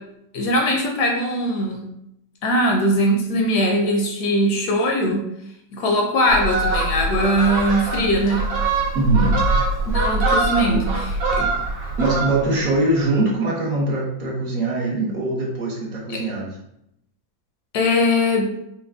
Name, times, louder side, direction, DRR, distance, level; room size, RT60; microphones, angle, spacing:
voice 1, 0.3-1.8 2.4-5.3 5.7-8.4 9.8-11.1 11.4-11.5 16.1-16.2 17.7-18.5, equal, 70° left, 1 dB, 1.1 m, -20 dB
Fowl, 6.3-12.6 13.0-13.2, right 2 dB, 75° right, 1.8 m, -23 dB
voice 2, 8.9-9.5 10.6-10.9 12.0-16.5, right 2 dB, 55° right, -4 dB, 1.3 m, -22 dB
4.8 x 2.2 x 3.4 m, 0.78 s
omnidirectional pair, 1.9 m